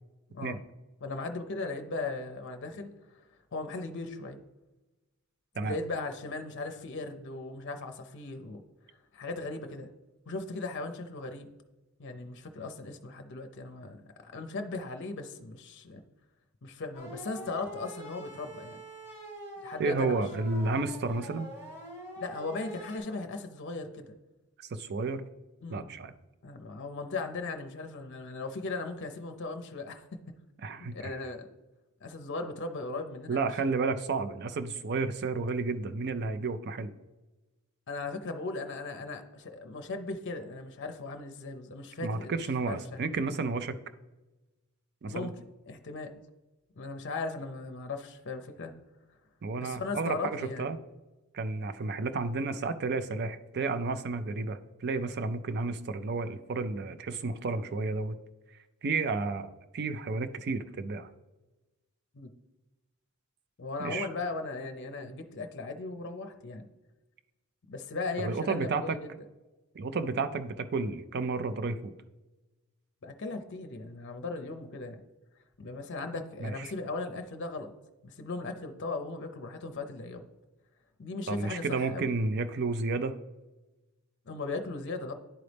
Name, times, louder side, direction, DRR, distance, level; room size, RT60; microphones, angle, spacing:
voice 1, 1.0-3.2 3.5-4.4 5.6-8.6 9.1-9.9 10.3-11.5 12.0-16.0 16.6-18.8 19.6-20.2 22.2-24.2 25.6-25.9 26.4-30.3 30.8-31.5 32.0-33.5 37.9-43.0 45.1-45.3 45.7-46.2 46.8-48.8 49.6-50.7 62.1-62.3 63.6-66.7 67.7-69.1 73.0-75.0 75.6-77.7 78.0-80.3 81.0-82.1 84.3-85.1, left 3 dB, 55° left, 6 dB, 0.6 m, -38 dB
sound 1, 16.9-23.0, right 1 dB, 15° right, 2.3 m, -45 dB
voice 2, 19.8-21.5 24.7-25.3 25.7-26.1 30.6-31.1 33.3-36.9 42.0-43.8 45.0-45.3 49.4-50.8 51.3-58.2 58.8-61.1 63.8-64.1 68.2-69.0 69.7-71.9 76.4-76.5 81.3-83.2, right 3 dB, 50° right, 11 dB, 0.4 m, -31 dB
10.5 x 4.0 x 3.4 m, 1.1 s
head